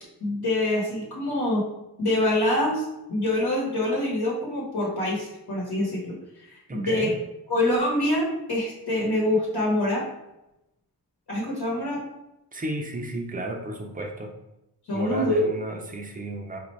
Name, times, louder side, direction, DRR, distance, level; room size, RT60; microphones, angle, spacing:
voice 1, 0.2-1.6 2.0-6.1 6.4-7.1 7.5-10.0 11.3-12.0 14.9-15.5, left 1 dB, 70° left, -4 dB, 1.2 m, -25 dB
voice 2, 6.7-7.2 12.5-14.3 14.9-16.6, right 1 dB, 20° right, 2 dB, 0.5 m, -33 dB
4.2 x 2.6 x 3.1 m, 0.89 s
wide cardioid pair, 100°, 40 cm